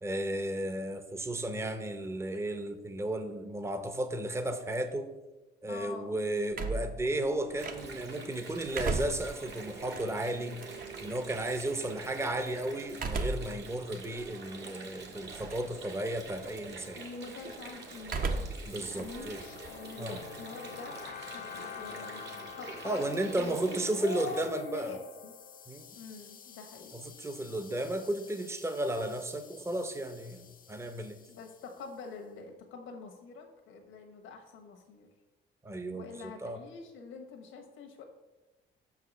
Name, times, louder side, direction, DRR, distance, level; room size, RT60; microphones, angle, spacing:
voice 1, 0.0-5.1 5.6-10.6 11.0-17.0 18.6-19.4 20.0-20.2 22.8-24.9 25.7-25.9 26.9-31.2 35.6-36.6, right 1 dB, 15° right, 8 dB, 0.7 m, -34 dB
voice 2, 5.7-6.2 16.9-18.5 18.8-22.2 22.6-25.3 25.9-27.0 31.3-35.1 35.9-38.0, left 4 dB, 85° left, 3 dB, 1.2 m, -45 dB
sound 1, 6.5-8.1 8.5-11.1 12.9-13.6 14.1-14.2 15.3-15.7 16.0-16.5 18.0-18.7 19.0-20.4, right 3 dB, 45° right, 0.8 m, -36 dB
Water, 7.6-24.5, right 3 dB, 60° right, 1.5 m, -46 dB
sound 2, 18.5-31.9, left 9 dB, 45° left, 0.6 m, -49 dB
6.1 x 4.8 x 6.0 m, 1.1 s
cardioid pair, 90°, 20 cm